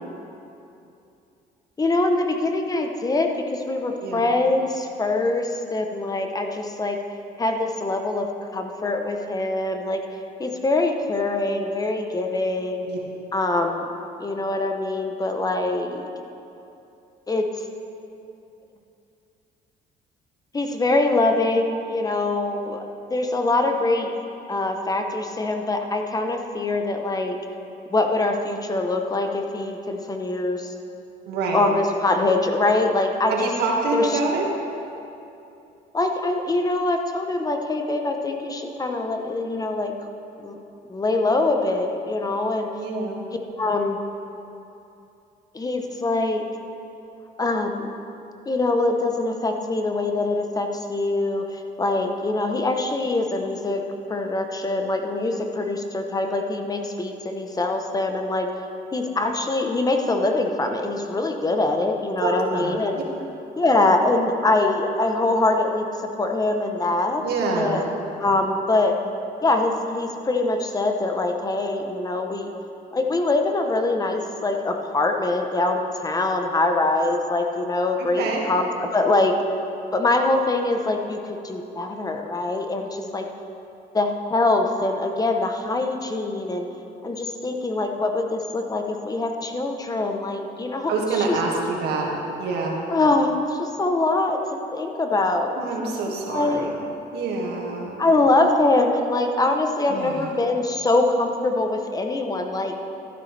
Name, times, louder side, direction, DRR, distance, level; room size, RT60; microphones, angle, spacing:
voice 1, 1.8-7.0 7.4-10.0 10.4-12.9 13.3-13.9 14.2-16.1 17.3-17.6 20.5-22.8 23.1-24.1 24.5-27.4 27.9-30.7 31.5-33.5 33.9-34.2 35.9-39.9 40.4-40.6 40.9-42.7 43.5-44.0 45.5-46.4 47.4-47.9 48.5-53.8 54.1-58.6 58.9-63.0 63.6-65.8 66.2-67.2 67.6-67.9 68.2-69.0 69.4-72.5 72.9-79.4 79.9-83.3 83.9-86.7 87.0-91.4 92.9-95.5 95.8-95.9 96.3-96.7 98.0-102.7, left 2 dB, 20° left, 4 dB, 0.9 m, -23 dB
voice 2, 31.3-31.6 33.3-34.5 42.8-43.2 62.2-62.7 67.2-67.8 78.2-78.4 90.9-92.1 92.4-92.7 95.6-96.7 97.1-97.9 99.9-100.3, right 3 dB, 80° right, -2 dB, 1.9 m, -26 dB
12.5 x 11.5 x 3.4 m, 2.7 s
cardioid pair, 110°, 17 cm